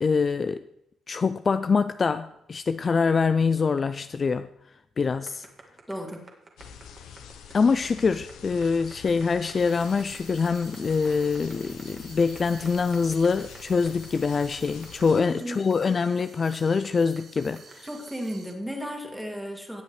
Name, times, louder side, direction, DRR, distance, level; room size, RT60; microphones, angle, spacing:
voice 1, 0.0-0.6 1.1-4.5 5.0-5.5 7.5-17.9, left 5 dB, 40° left, 0.3 m, -24 dB
sound 1, 5.3-18.1, right 3 dB, 35° right, 1.8 m, -49 dB
voice 2, 5.9-6.3 15.1-15.6 17.8-19.8, equal, 5° right, 2.2 m, -34 dB
sound 2, 6.6-15.2, left 7 dB, 85° left, 0.9 m, -46 dB
sound 3, 9.6-18.5, right 5 dB, 55° right, 1.4 m, -50 dB
17.5 x 7.2 x 3.2 m
cardioid pair, 90°, 0 cm